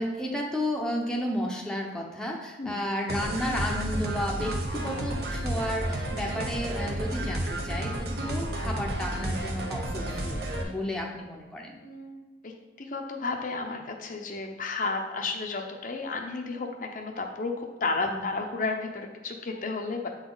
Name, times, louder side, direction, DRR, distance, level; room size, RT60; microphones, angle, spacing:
voice 1, 0.0-11.8 18.1-18.2, equal, 5° left, -1 dB, 0.7 m, -32 dB
sound 1, 3.1-10.6, right 1 dB, 60° right, 0.9 m, -31 dB
voice 2, 11.7-20.1, left 3 dB, 45° left, 3 dB, 0.6 m, -33 dB
7.8 x 4.0 x 3.9 m, 1.3 s
head